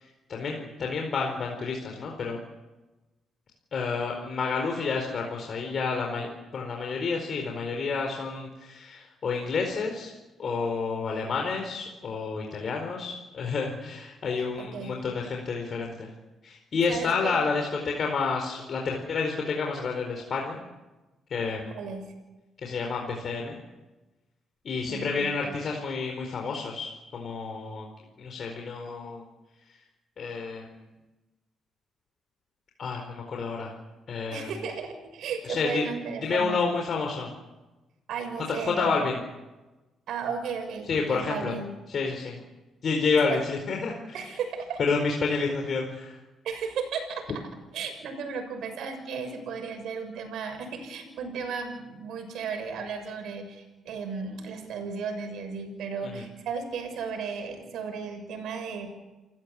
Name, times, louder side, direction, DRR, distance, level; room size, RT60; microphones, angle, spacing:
voice 1, 0.3-2.4 3.7-10.1 10.4-16.1 16.4-20.6 21.3-21.7 22.6-23.6 24.6-27.9 28.2-29.2 30.2-30.7 32.8-33.7 34.1-34.5 35.5-35.9 36.2-37.3 38.5-39.2 40.9-41.5 41.9-42.3 42.8-44.3 44.8-46.2 56.2-56.3, left 4 dB, 55° left, 1 dB, 4.5 m, -29 dB
voice 2, 14.4-15.0 16.9-17.4 21.7-22.1 24.9-25.4 34.3-36.7 38.1-39.0 40.1-41.7 43.3-43.4 44.1-44.8 46.4-47.2 47.7-58.9, right 5 dB, 75° right, 6 dB, 6.5 m, -35 dB
29.0 x 15.5 x 8.5 m, 1.1 s
cardioid pair, 90°, 0 cm